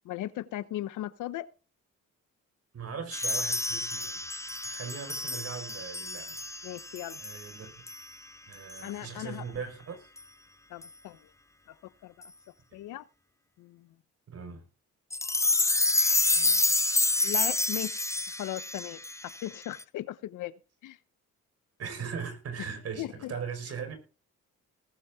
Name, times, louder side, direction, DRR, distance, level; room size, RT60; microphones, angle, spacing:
voice 1, 0.0-1.5 6.6-7.2 8.8-9.4 10.7-11.3 11.7-11.8 12.0-12.3 12.7-13.0 13.6-13.9 16.4-16.7 17.2-21.0 22.6-22.7 23.0-23.3, left 14 dB, 85° left, 1.0 m, -38 dB
voice 2, 2.7-4.2 4.6-6.4 7.2-7.7 8.5-10.1 14.3-14.6 21.8-24.0, right 6 dB, 55° right, 5.0 m, -39 dB
sound 1, 3.1-7.6 7.9-8.1 8.7-8.9 10.2-10.3 10.8-10.9 12.2-12.3 15.1-19.8, left 2 dB, 10° left, 0.6 m, -29 dB
19.0 x 8.4 x 3.7 m
cardioid pair, 90°, 30 cm